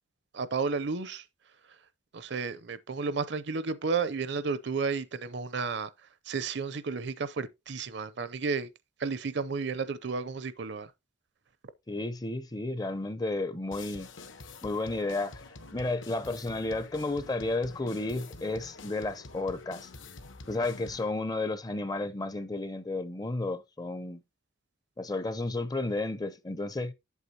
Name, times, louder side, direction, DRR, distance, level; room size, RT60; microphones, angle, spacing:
voice 1, 0.3-1.2 2.1-5.9 6.3-8.7 9.0-10.9, right 4 dB, 60° right, 0.5 m, -32 dB
voice 2, 11.9-14.1 14.6-15.4 15.7-19.9 20.5-24.2 25.0-26.9, left 2 dB, 20° left, 0.5 m, -32 dB
sound 1, 13.7-21.1, left 3 dB, 70° left, 1.0 m, -47 dB
8.2 x 7.4 x 2.8 m
head